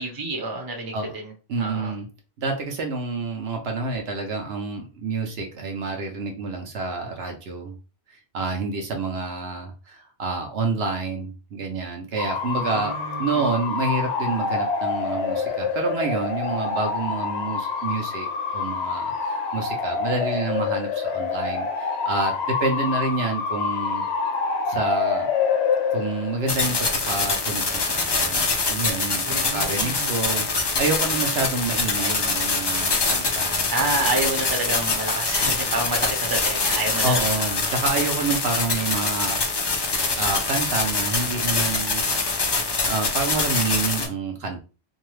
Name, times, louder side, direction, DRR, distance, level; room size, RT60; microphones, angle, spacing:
voice 1, 0.0-1.3 1.6-1.9 12.6-13.5 29.2-30.1 33.7-37.5, right 2 dB, 25° right, 1 dB, 0.6 m, -29 dB
voice 2, 1.5-2.1 2.4-7.8 8.3-24.1 24.7-25.3 25.9-33.6 37.0-39.4 40.2-42.0 42.8-44.6, right 3 dB, 70° right, 3 dB, 0.9 m, -28 dB
Bark / Motor vehicle (road) / Siren, 12.2-28.4, left 5 dB, 75° left, 0.8 m, -27 dB
sound 1, 26.5-44.1, left 3 dB, 40° left, 0.3 m, -24 dB
2.7 x 2.3 x 3.1 m, 0.33 s
omnidirectional pair, 1.1 m